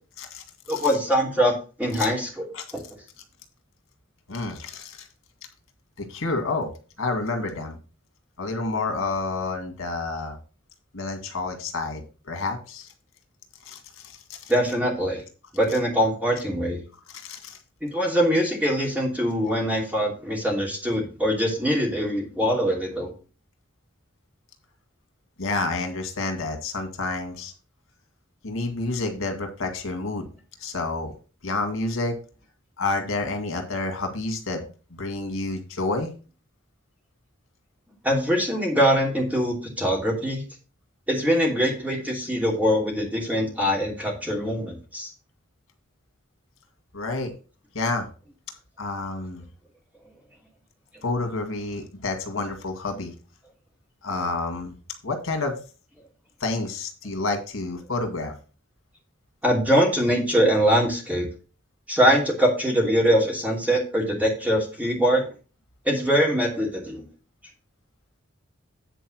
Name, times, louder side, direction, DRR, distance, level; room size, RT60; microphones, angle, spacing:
voice 1, 0.7-2.5 14.5-15.2 15.5-16.8 17.8-23.1 38.0-40.4 41.1-45.1 59.4-61.3 61.9-65.2 65.8-67.0, equal, 5° right, -1 dB, 2.8 m, -23 dB
voice 2, 4.3-5.1 6.0-6.7 7.0-7.8 8.4-10.4 10.9-12.0 12.3-12.9 13.7-14.4 17.1-17.6 25.4-27.5 28.4-30.3 30.6-31.1 31.4-32.1 32.8-34.7 35.0-36.1 46.9-47.3 47.7-48.1 48.8-49.4 51.0-53.1 54.0-54.7 55.0-55.5 56.4-58.3, left 3 dB, 90° left, 5 dB, 2.0 m, -29 dB
9.1 x 4.6 x 6.1 m, 0.36 s
head